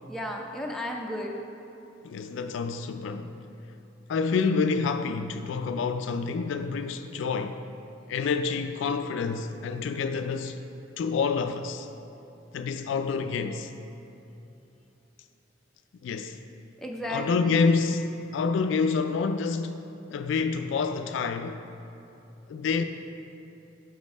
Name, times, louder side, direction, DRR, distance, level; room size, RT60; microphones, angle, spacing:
voice 1, 0.1-1.3 16.8-17.6, equal, ahead, 0.5 m, -34 dB
voice 2, 2.0-3.3 4.1-7.7 8.1-10.6 11.0-11.9 12.5-13.7 16.0-16.4 17.1-21.6 22.5-22.8, left 5 dB, 70° left, 0.3 m, -28 dB
6.4 x 5.2 x 5.3 m
head